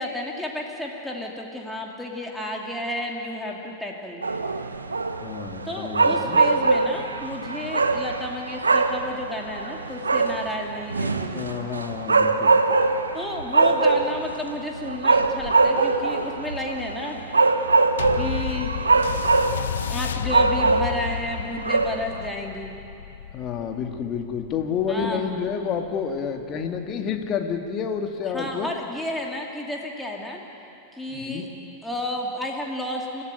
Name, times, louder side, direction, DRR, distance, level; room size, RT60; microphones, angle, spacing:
voice 1, 0.0-4.2 5.6-11.4 13.1-17.2 18.1-18.7 19.9-22.7 24.9-25.3 28.3-30.4 30.9-31.5 31.8-33.2, left 1 dB, 5° left, -1 dB, 2.6 m, -32 dB
sound 1, 4.2-22.3, right 3 dB, 75° right, 1.0 m, -23 dB
voice 2, 5.2-6.4 11.3-12.5 23.3-28.7 31.1-31.5, left 6 dB, 35° left, 4 dB, 2.2 m, -29 dB
sound 2, 18.0-26.8 27.5-27.6, left 9 dB, 65° left, 0.4 m, -32 dB
30.0 x 14.0 x 9.1 m, 2.8 s
figure-of-eight pair, 90°, 0 cm